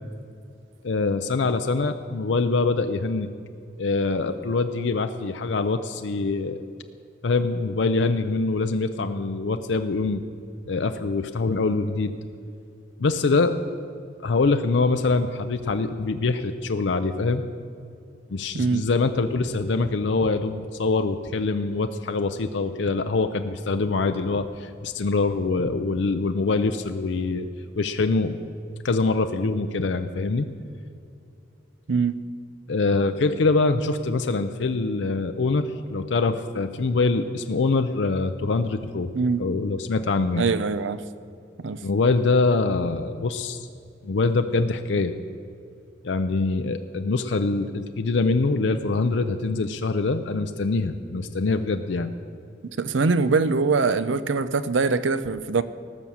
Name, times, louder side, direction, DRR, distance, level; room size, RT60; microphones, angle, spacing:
voice 1, 0.8-3.3 3.8-6.6 7.2-10.2 10.7-12.1 13.0-13.6 14.2-17.4 18.3-27.5 27.8-28.4 28.8-30.5 32.7-39.1 39.4-40.5 41.8-43.7 44.0-45.1 46.0-52.1, left 3 dB, 70° left, 0.5 m, -24 dB
voice 2, 40.4-41.0 41.6-41.8 52.8-55.6, right 4 dB, 85° right, 0.6 m, -23 dB
18.5 x 6.2 x 7.1 m
head